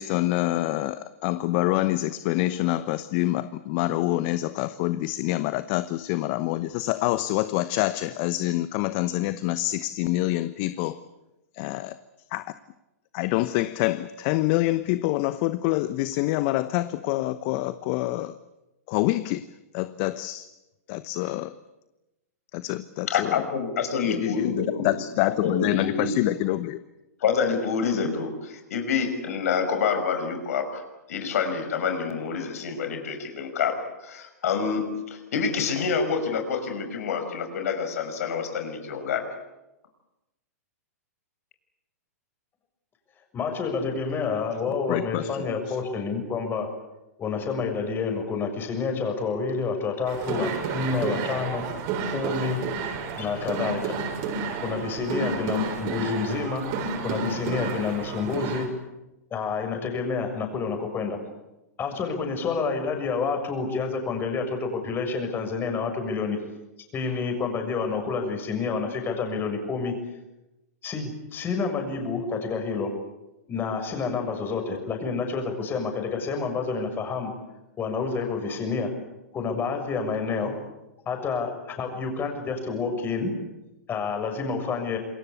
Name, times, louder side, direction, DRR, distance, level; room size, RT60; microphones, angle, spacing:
voice 1, 0.0-11.0 11.5-12.0 12.3-12.4 13.1-18.4 18.9-19.5 19.7-20.5 20.9-21.5 22.5-23.4 24.0-26.8 44.9-45.8, left 17 dB, 45° left, 13 dB, 1.0 m, -26 dB
voice 2, 23.1-26.4 27.2-30.8 31.1-33.8 34.0-39.2, left 6 dB, 65° left, 7 dB, 6.0 m, -27 dB
voice 3, 43.3-46.7 47.2-51.7 52.1-52.7 53.2-54.0 54.6-56.7 57.0-58.7 59.3-61.2 61.8-66.4 66.9-70.0 70.8-72.9 73.5-77.3 77.8-78.9 79.3-80.5 81.1-83.3 83.9-85.0, left 5 dB, 25° left, 5 dB, 6.8 m, -28 dB
sound 1, 50.1-58.7, right 5 dB, 45° right, 7.4 m, -31 dB
28.0 x 22.0 x 8.4 m, 0.99 s
hypercardioid pair, 115°, 9 cm